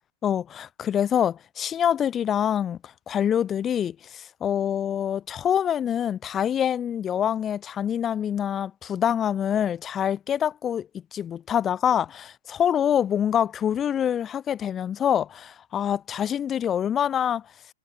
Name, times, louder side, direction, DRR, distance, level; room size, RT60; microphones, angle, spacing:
voice 1, 0.2-12.1 12.5-17.4, left 9 dB, 20° left, 1.3 m, -25 dB
hypercardioid pair, 125°, 0 cm